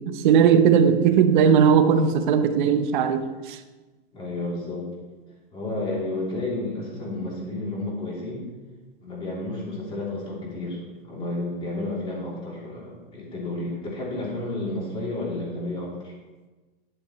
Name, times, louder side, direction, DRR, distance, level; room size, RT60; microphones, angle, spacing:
voice 1, 0.0-3.6, right 7 dB, 50° right, 9 dB, 0.9 m, -18 dB
voice 2, 4.1-4.9 5.5-8.4 9.0-16.1, left 2 dB, 15° left, -5 dB, 3.1 m, -31 dB
10.5 x 8.4 x 3.2 m, 1.2 s
hypercardioid pair, 145°, 30 cm